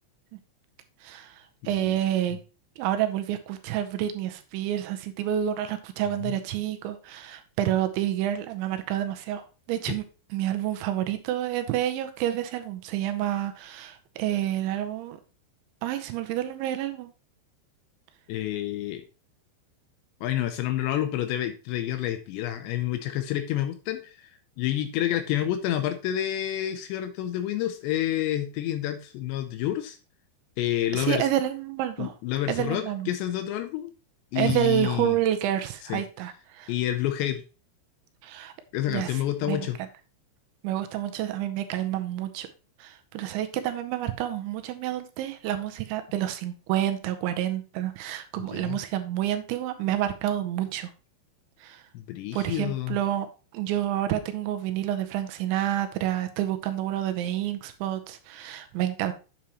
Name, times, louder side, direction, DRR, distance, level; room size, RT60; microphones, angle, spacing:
voice 1, 1.0-2.4 2.8-10.0 10.3-15.2 15.8-17.1 30.9-32.1 32.5-33.1 34.4-36.7 38.2-38.5 38.9-39.7 40.6-42.5 42.8-50.9 51.6-51.8 52.3-53.3 53.5-59.1, right 12 dB, 85° right, 8 dB, 3.0 m, -29 dB
voice 2, 18.3-19.0 20.2-24.3 24.6-30.0 30.6-31.3 32.0-33.9 34.3-35.2 35.9-36.0 36.7-37.4 38.7-39.8 48.4-48.8 51.9-53.0, left 12 dB, 85° left, 8 dB, 2.6 m, -29 dB
8.9 x 7.0 x 3.0 m, 0.33 s
omnidirectional pair, 5.5 m